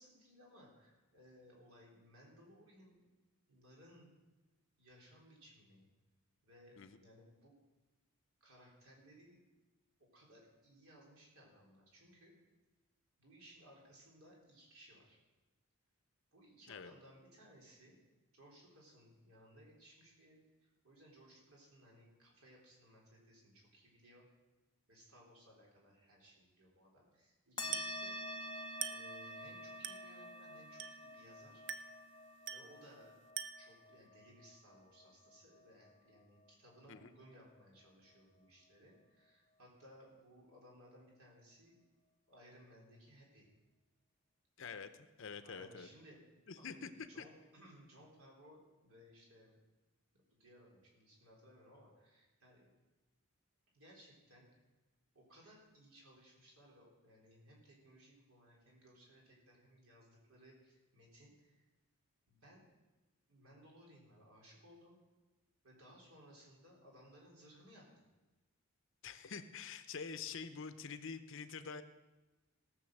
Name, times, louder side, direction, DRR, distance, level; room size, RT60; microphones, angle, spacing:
voice 1, 0.0-3.0 3.5-4.1 4.8-5.9 6.4-7.5 8.4-9.4 10.1-12.3 13.2-15.2 16.3-18.0 18.3-24.2 24.9-28.4 28.9-31.7 32.5-33.2 33.6-41.8 42.3-43.5 45.4-46.2 46.6-49.6 50.1-52.7 53.7-54.5 55.1-61.6 62.3-62.7 63.3-65.0 65.6-67.8, equal, 70° right, -3 dB, 4.0 m, -62 dB
sound 1, 27.6-36.5, left 1 dB, 20° left, 0.7 m, -48 dB
Glass, 27.7-28.1 28.8-29.2 29.8-30.2 30.8-31.1 31.7-32.0 32.5-32.8 33.4-33.8, right 9 dB, 55° right, 0.5 m, -44 dB
voice 2, 44.6-45.9 46.5-46.9 47.2-47.3 69.0-71.8, left 5 dB, 55° left, 10 dB, 0.7 m, -46 dB
17.5 x 6.6 x 6.5 m, 1.1 s
head